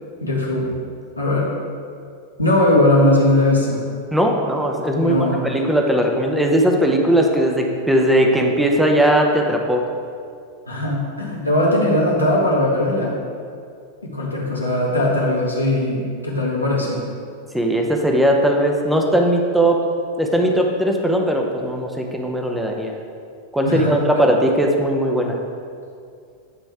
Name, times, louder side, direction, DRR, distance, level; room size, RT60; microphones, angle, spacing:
voice 1, 0.2-0.8 1.2-1.5 2.4-3.8 5.0-5.5 10.7-13.2 14.0-17.0 23.6-24.2, left 1 dB, 85° left, -4 dB, 1.4 m, -19 dB
voice 2, 4.1-5.2 5.4-9.8 17.5-19.8 20.2-22.9 23.5-25.4, right 1 dB, 5° right, 1 dB, 0.7 m, -18 dB
9.7 x 3.2 x 4.8 m, 2.3 s
figure-of-eight pair, 90°, 0 cm